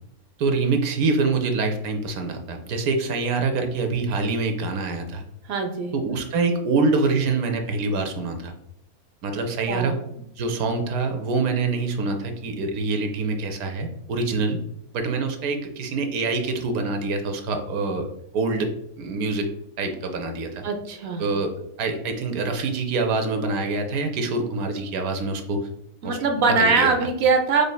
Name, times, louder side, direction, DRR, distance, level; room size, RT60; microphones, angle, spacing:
voice 1, 0.4-5.2 5.9-8.5 9.2-14.6 14.9-18.1 18.3-18.7 19.0-19.5 19.8-20.6 21.2-21.5 21.8-25.7 26.0-26.2 26.6-26.9, right 3 dB, 80° right, 5 dB, 1.1 m, -25 dB
voice 2, 5.5-5.9 9.7-9.9 20.6-21.3 26.0-27.7, right 4 dB, 60° right, 5 dB, 0.6 m, -22 dB
5.1 x 3.3 x 2.2 m, 0.76 s
omnidirectional pair, 1.6 m